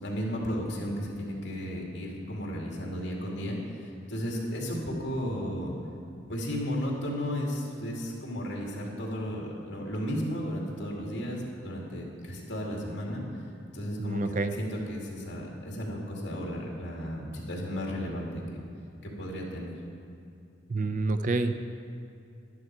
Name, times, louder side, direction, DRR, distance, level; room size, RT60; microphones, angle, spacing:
voice 1, 0.0-5.7 6.3-13.2 13.7-14.2 14.6-18.4 19.0-19.8, equal, 65° left, -2 dB, 2.4 m, -34 dB
voice 2, 14.0-14.6 20.7-21.6, right 3 dB, 40° right, 9 dB, 0.4 m, -28 dB
11.0 x 11.0 x 4.7 m, 2.5 s
head